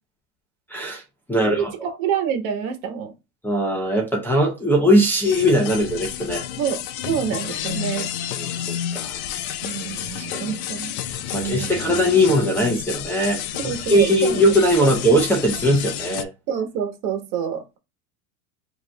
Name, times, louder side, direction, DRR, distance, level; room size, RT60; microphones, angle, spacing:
voice 1, 0.7-1.0 1.3-1.7 3.4-6.4 8.4-8.5 8.9-9.2 10.1-10.4 11.3-16.3, equal, 5° left, 0.7 m, -20 dB
voice 2, 1.4-3.1 6.6-8.1 9.6-10.9 11.3-11.8 13.5-14.5 14.8-15.0 16.5-17.6, right 8 dB, 60° right, 1.3 m, -27 dB
sound 1, 5.2-16.2, left 10 dB, 65° left, 0.7 m, -30 dB
4.8 x 2.9 x 2.2 m
supercardioid pair, 145°, 46 cm